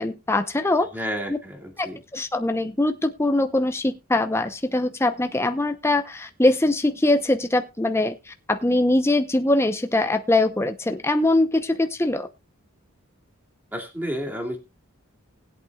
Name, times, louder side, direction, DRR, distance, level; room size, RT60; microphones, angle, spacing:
voice 1, 0.0-0.9 1.3-1.4 1.8-1.9 2.1-8.1 8.5-12.3, left 2 dB, 15° left, 7 dB, 0.8 m, -22 dB
voice 2, 0.9-2.0 13.7-14.6, equal, 10° right, 1 dB, 2.3 m, -31 dB
20.0 x 8.3 x 2.4 m, 0.24 s
head